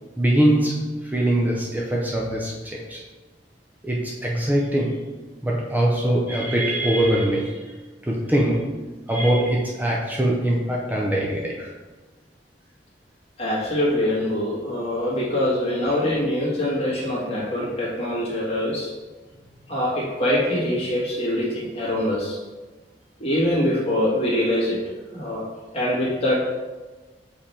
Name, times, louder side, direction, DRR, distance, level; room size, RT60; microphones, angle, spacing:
voice 1, 0.2-3.0 3.8-5.1 5.4-7.7 8.0-8.7 9.1-11.7, right 1 dB, 10° right, -3 dB, 0.6 m, -22 dB
voice 2, 13.4-18.9 19.7-22.4 23.2-24.8 25.1-25.4 25.7-26.4, left 1 dB, 35° left, -5 dB, 1.9 m, -24 dB
7.4 x 3.4 x 4.3 m, 1.2 s
head